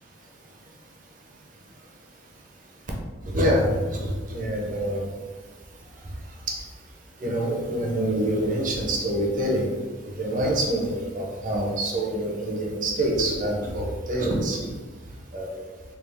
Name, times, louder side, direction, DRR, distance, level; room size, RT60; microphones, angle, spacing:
voice 1, 3.2-5.1 6.5-6.6 7.2-9.8 10.2-14.7 15.3-15.6, right 1 dB, 40° right, -1 dB, 0.6 m, -26 dB
3.4 x 2.3 x 3.3 m, 1.3 s
head